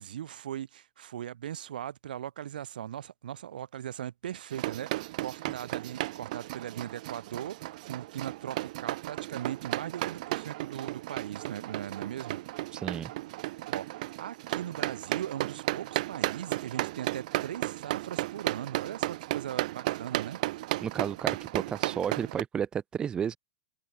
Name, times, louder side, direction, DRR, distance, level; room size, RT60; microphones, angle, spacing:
voice 1, 0.0-12.4 13.7-20.4, right 10 dB, 75° right, 2.9 m, -39 dB
sound 1, 4.5-22.4, right 18 dB, 55° right, 1.5 m, -34 dB
voice 2, 12.7-13.1 20.8-23.4, right 8 dB, 15° right, 1.6 m, -32 dB
open air
hypercardioid pair, 145°, 5 cm